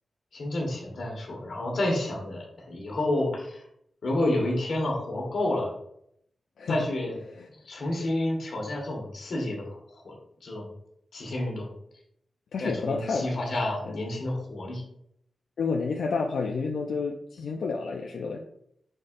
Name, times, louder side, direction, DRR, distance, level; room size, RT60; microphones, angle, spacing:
voice 1, 0.3-3.6 4.0-5.7 6.7-7.2 7.6-9.8 10.0-10.1 10.4-10.7 11.1-11.7 12.6-14.8, left 1 dB, 60° left, -1 dB, 1.4 m, -29 dB
voice 2, 12.5-13.4 13.8-14.0 15.6-18.4, left 4 dB, 85° left, 1 dB, 0.4 m, -30 dB
4.9 x 4.2 x 2.5 m, 0.73 s
wide cardioid pair, 170°, 0 cm